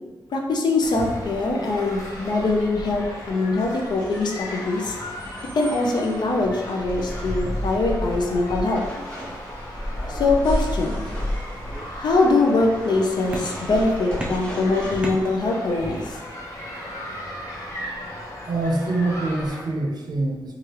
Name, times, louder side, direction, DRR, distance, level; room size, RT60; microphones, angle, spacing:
voice 1, 0.3-5.0 5.5-8.8 10.1-11.0 12.0-16.2, left 3 dB, 65° left, 1 dB, 0.5 m, -22 dB
sound 1, 0.8-19.6, left 1 dB, 40° left, 0.8 m, -33 dB
sound 2, 2.3-15.2, equal, 15° left, 1.0 m, -42 dB
sound 3, 9.9-11.3 11.6-12.4 13.3-13.8 14.2-15.8, equal, 10° right, 0.4 m, -36 dB
voice 2, 18.5-20.5, right 2 dB, 60° right, 0 dB, 0.6 m, -25 dB
3.1 x 2.3 x 3.0 m, 1.3 s
wide cardioid pair, 105°, 8 cm